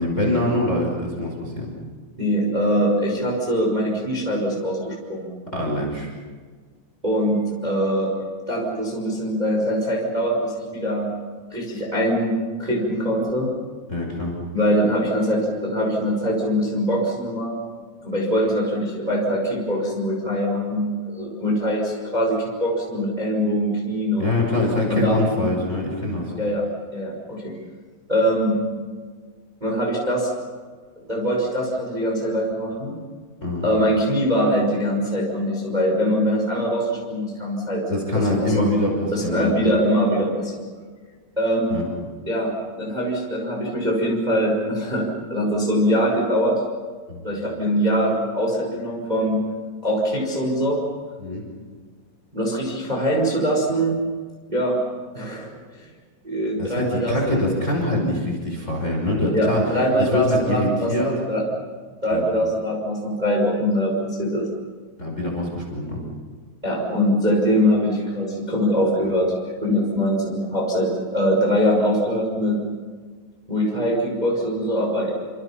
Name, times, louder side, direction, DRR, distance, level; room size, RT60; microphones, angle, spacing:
voice 1, 0.0-1.7 5.5-6.1 13.9-14.4 24.2-26.3 33.4-33.7 37.9-39.5 41.7-41.9 47.1-47.3 51.2-51.4 56.6-59.6 60.0-61.1 62.1-62.2 65.0-66.0, left 1 dB, 15° left, -1 dB, 5.5 m, -24 dB
voice 2, 2.2-5.2 7.0-8.1 8.5-11.1 11.5-13.5 14.5-17.6 18.0-24.3 24.9-25.5 26.4-27.5 28.1-28.6 29.6-30.3 31.1-32.9 33.6-37.8 38.1-38.7 39.1-40.5 41.4-41.8 42.2-46.6 47.2-49.4 49.8-50.8 52.3-54.0 54.5-54.8 55.1-55.5 56.2-57.4 59.3-61.4 62.0-64.5 66.6-69.3 69.6-72.6 73.5-75.1, equal, 10° right, -1 dB, 5.0 m, -22 dB
29.0 x 27.0 x 5.8 m, 1.5 s
omnidirectional pair, 4.9 m